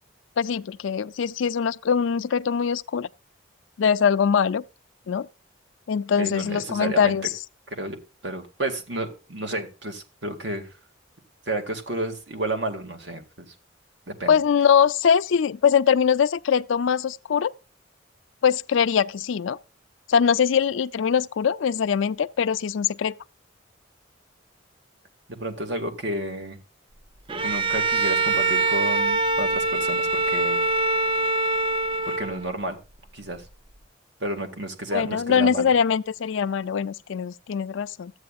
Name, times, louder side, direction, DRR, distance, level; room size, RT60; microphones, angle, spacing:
voice 1, 0.4-3.1 3.8-4.6 5.1-5.3 5.9-7.3 14.3-17.5 18.4-19.6 20.1-23.1 34.9-38.1, left 7 dB, 70° left, 0.4 m, -22 dB
voice 2, 6.2-7.2 7.7-8.0 8.2-10.7 11.5-13.5 14.1-14.3 25.3-26.6 27.4-30.7 32.2-32.8 33.1-33.4 34.2-35.7, right 1 dB, 60° right, 1.9 m, -31 dB
Bowed string instrument, 27.3-32.6, right 3 dB, 25° right, 0.4 m, -24 dB
14.0 x 8.6 x 2.4 m
head